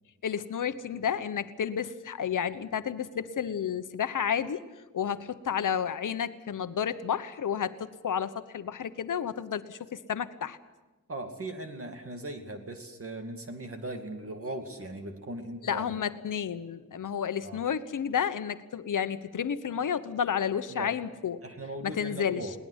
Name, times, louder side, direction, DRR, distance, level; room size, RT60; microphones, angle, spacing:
voice 1, 0.2-4.6 4.9-10.6 15.6-21.4 21.8-22.5, left 8 dB, 70° left, 12 dB, 1.1 m, -31 dB
voice 2, 11.1-15.8 17.4-17.6 20.7-20.9 21.4-22.5, right 2 dB, 45° right, 5 dB, 2.4 m, -39 dB
21.5 x 18.5 x 8.2 m, 1.2 s
wide cardioid pair, 115°, 32 cm